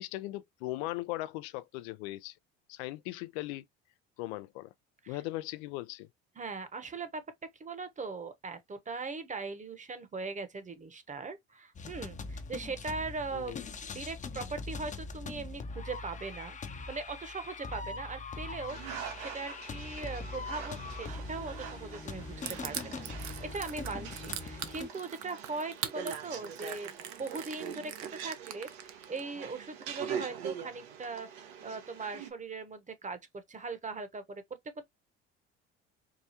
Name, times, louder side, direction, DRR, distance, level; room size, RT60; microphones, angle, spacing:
voice 1, 0.0-2.3 2.7-3.7 4.2-4.7 5.1-6.1 13.3-13.6, left 18 dB, 80° left, 0.5 m, -38 dB
voice 2, 6.4-7.2 7.6-16.6 16.9-18.8 19.2-34.4, right 4 dB, 25° right, 0.9 m, -40 dB
sound 1, 11.8-24.9, left 4 dB, 25° left, 0.6 m, -42 dB
sound 2, 18.7-32.3, right 8 dB, 85° right, 1.1 m, -43 dB
Crushing, 22.5-29.2, right 11 dB, 65° right, 0.8 m, -41 dB
4.8 x 2.3 x 2.8 m
supercardioid pair, 75°, 31 cm